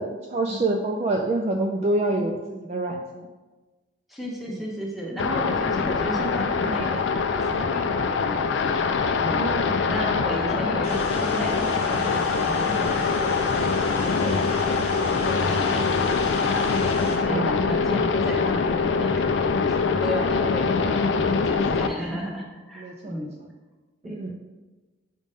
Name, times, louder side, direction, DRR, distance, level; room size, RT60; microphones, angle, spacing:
voice 1, 0.0-3.3 4.5-4.6 9.2-9.7 12.6-12.9 17.1-17.6 21.7-21.8 22.8-23.3 24.0-24.3, right 2 dB, 30° right, 2 dB, 0.3 m, -27 dB
voice 2, 4.1-8.5 8.8-9.4 9.8-23.3 24.0-24.2, equal, ahead, -3 dB, 0.9 m, -34 dB
sound 1, 5.2-21.9, left 5 dB, 60° left, 0.4 m, -24 dB
sound 2, 10.8-17.2, left 2 dB, 35° left, 1.0 m, -34 dB
5.1 x 3.5 x 5.3 m, 1.2 s
head